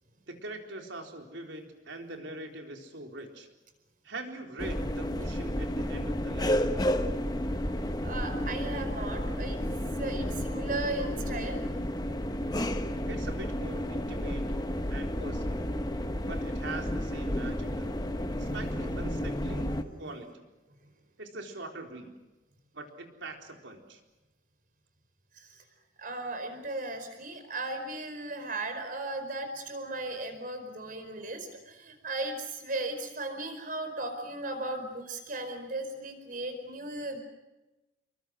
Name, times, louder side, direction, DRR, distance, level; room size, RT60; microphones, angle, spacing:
voice 1, 0.3-3.5 4.0-6.7 13.1-14.5 14.9-15.7 16.2-18.0 18.4-19.7 20.0-20.5 21.2-22.1 22.7-24.0, right 2 dB, 70° right, 3 dB, 4.0 m, -42 dB
sound 1, 4.6-19.8, equal, 20° left, 1.1 m, -32 dB
voice 2, 8.0-9.6 10.0-11.6 18.3-20.2 25.3-25.6 26.0-37.2, right 2 dB, 45° right, 7 dB, 4.7 m, -37 dB
28.0 x 23.0 x 6.4 m, 1.1 s
head